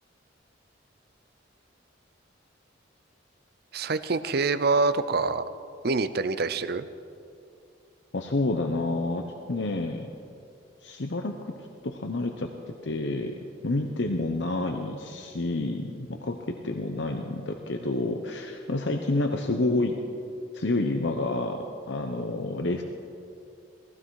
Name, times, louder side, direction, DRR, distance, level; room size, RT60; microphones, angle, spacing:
voice 1, 3.7-5.4 5.8-6.9, right 3 dB, 55° right, 12 dB, 0.6 m, -25 dB
voice 2, 8.1-9.2 9.5-10.1 10.8-11.5 11.8-12.5 12.8-20.0 20.5-22.8, left 2 dB, 65° left, 4 dB, 0.8 m, -29 dB
17.5 x 15.5 x 4.8 m, 2.5 s
head